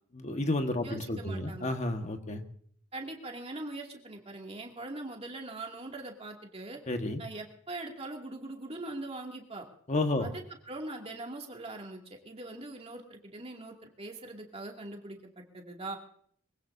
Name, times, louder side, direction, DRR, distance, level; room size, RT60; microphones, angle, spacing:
voice 1, 0.1-2.4 6.9-7.2 9.9-10.3, left 2 dB, 35° left, 5 dB, 1.5 m, -31 dB
voice 2, 0.8-1.7 2.9-6.8 7.2-9.7 10.2-16.0, right 2 dB, 30° right, 1 dB, 2.5 m, -42 dB
24.0 x 16.5 x 2.7 m, 0.63 s
head